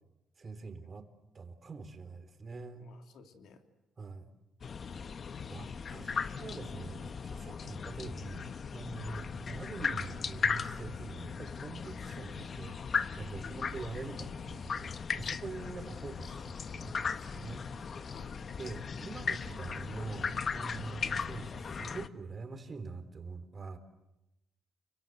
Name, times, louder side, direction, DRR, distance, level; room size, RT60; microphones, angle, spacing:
voice 1, 0.4-1.1 1.3-2.9 4.0-4.3 5.5-12.8 13.1-18.1 18.6-23.8, right 3 dB, 35° right, 8 dB, 3.8 m, -44 dB
voice 2, 2.8-3.6 4.9-5.1 9.1-9.3 13.4-13.6 18.1-18.3, left 5 dB, 75° left, 5 dB, 3.2 m, -54 dB
sound 1, 4.6-22.1, left 6 dB, 45° left, 1.1 m, -37 dB
29.5 x 25.0 x 8.0 m, 0.94 s
cardioid pair, 90°, 0 cm